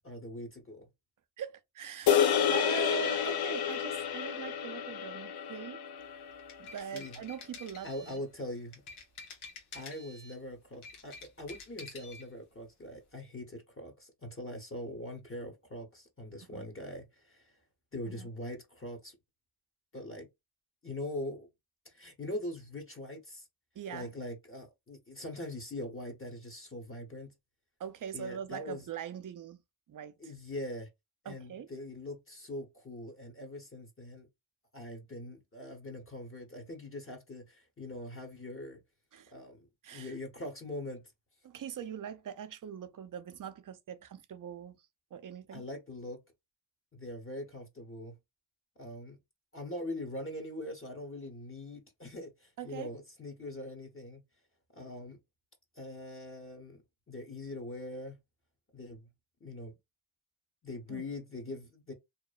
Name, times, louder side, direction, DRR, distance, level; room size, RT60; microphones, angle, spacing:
voice 1, 0.0-0.9 2.5-2.6 6.9-7.2 7.8-8.8 9.7-17.5 17.9-19.2 19.9-20.3 20.8-21.5 21.8-23.5 23.9-27.3 28.1-28.8 30.2-30.9 31.2-34.3 34.7-38.8 39.3-39.7 39.9-41.0 45.5-46.2 46.9-48.2 48.8-49.2 49.5-54.2 54.7-55.2 55.7-56.8 57.1-58.1 58.7-59.1 59.4-59.7 60.6-61.9, left 1 dB, 25° left, 0.9 m, -42 dB
voice 2, 1.4-5.8 6.6-7.9 16.5-16.7 18.0-18.3 23.8-24.1 27.8-29.6 29.9-30.3 31.3-31.7 39.1-39.3 39.8-40.1 41.4-44.8 45.1-45.7 52.6-52.9 60.9-61.0, right 8 dB, 45° right, 0.5 m, -42 dB
sound 1, 2.1-6.5, left 8 dB, 50° left, 0.5 m, -30 dB
sound 2, 6.3-8.3 8.7-10.4 10.7-12.3, left 4 dB, 80° left, 1.0 m, -49 dB
2.9 x 2.1 x 2.3 m
supercardioid pair, 50°, 48 cm